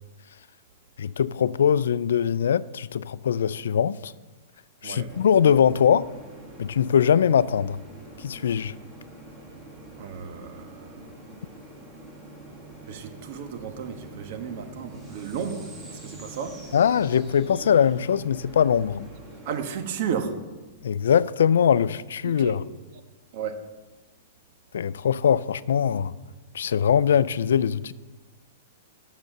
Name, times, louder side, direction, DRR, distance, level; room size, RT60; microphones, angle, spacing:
voice 1, 1.0-4.1 4.8-6.1 6.6-7.8 8.2-8.7 16.7-19.1 20.8-22.6 24.7-26.1 26.5-27.9, left 8 dB, 90° left, 0.4 m, -22 dB
sound 1, 5.1-19.6, right 2 dB, 10° right, 2.2 m, -45 dB
voice 2, 10.0-10.9 12.9-16.6 19.4-20.3 22.4-22.5 23.3-23.6, right 7 dB, 50° right, 1.3 m, -33 dB
12.0 x 6.8 x 6.6 m
hypercardioid pair, 155°, 0 cm